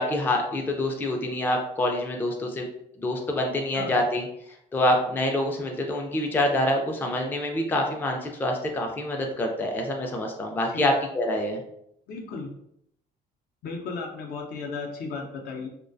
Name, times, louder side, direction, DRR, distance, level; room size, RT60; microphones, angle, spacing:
voice 1, 0.0-2.7 3.0-4.2 4.7-11.6, left 1 dB, 10° left, 1 dB, 0.3 m, -26 dB
voice 2, 12.1-12.5 13.6-15.7, left 4 dB, 65° left, 1 dB, 0.6 m, -35 dB
2.3 x 2.1 x 2.5 m, 0.75 s
cardioid pair, 110°, 17 cm